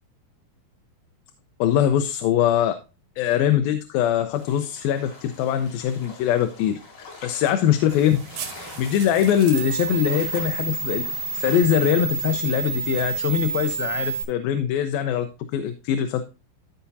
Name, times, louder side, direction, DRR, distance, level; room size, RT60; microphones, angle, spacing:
voice 1, 1.6-2.7 3.2-8.2 8.8-11.0 11.3-16.2, left 10 dB, 80° left, 8 dB, 2.4 m, -22 dB
sound 1, 4.3-11.6, left 3 dB, 50° left, 4.8 m, -45 dB
sound 2, 7.9-14.2, right 5 dB, 70° right, 3.0 m, -30 dB
14.0 x 5.8 x 2.7 m, 0.29 s
omnidirectional pair, 4.3 m